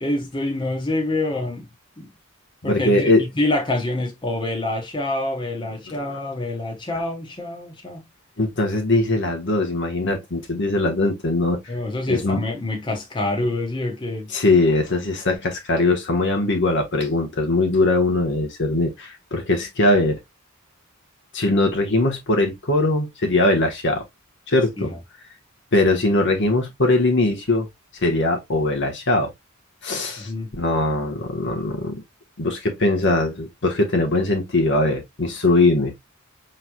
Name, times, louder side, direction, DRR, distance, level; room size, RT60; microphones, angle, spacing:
voice 1, 0.0-1.7 2.0-2.1 2.6-8.1 11.7-14.3 24.8-25.0 30.2-30.5, left 2 dB, 20° left, 1.3 m, -26 dB
voice 2, 2.6-3.2 5.9-6.2 8.4-11.6 12.1-12.5 14.3-20.2 21.3-24.0 24.5-24.9 25.7-27.7 28.0-29.3 29.8-32.0 32.4-36.0, left 2 dB, 55° left, 1.2 m, -21 dB
5.9 x 3.2 x 2.3 m
head